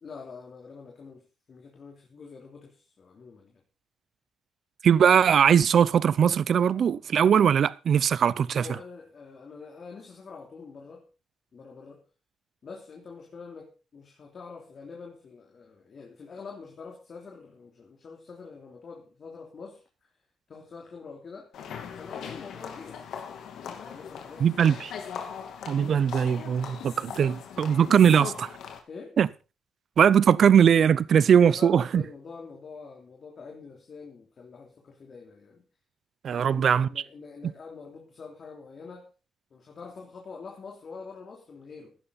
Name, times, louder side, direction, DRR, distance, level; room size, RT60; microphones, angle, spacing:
voice 1, 0.0-3.6 8.5-11.1 11.5-12.0 12.6-20.1 20.5-21.5 21.9-23.2 23.8-25.2 27.7-28.2 28.9-29.2 31.1-35.6 36.3-39.1 39.5-42.0, left 4 dB, 45° left, 3.3 m, -45 dB
voice 2, 4.8-8.7 24.4-24.9 25.7-28.5 29.2-29.3 30.0-32.0 36.2-36.9, right 8 dB, 55° right, 0.6 m, -20 dB
sound 1, 21.5-28.8, left 7 dB, 75° left, 2.8 m, -40 dB
15.0 x 11.0 x 4.1 m
cardioid pair, 90°, 0 cm